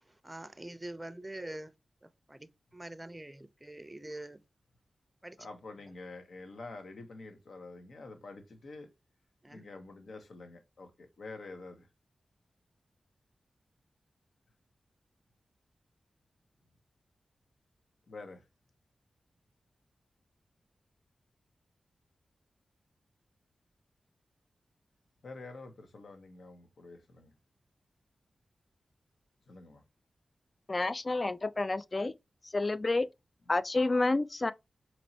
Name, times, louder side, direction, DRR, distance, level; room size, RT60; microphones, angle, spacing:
voice 1, 0.2-1.7 2.0-2.5 2.7-4.4 5.2-5.4 9.4-9.6, right 1 dB, 20° right, 0.5 m, -44 dB
voice 2, 5.4-8.9 9.5-11.9 18.1-18.4 25.2-27.3 29.5-29.8 33.5-33.6, left 3 dB, 75° left, 0.8 m, -47 dB
voice 3, 30.7-32.1 32.5-33.1 33.5-34.5, left 2 dB, 40° left, 0.3 m, -29 dB
4.2 x 3.0 x 2.7 m
cardioid pair, 50°, 0 cm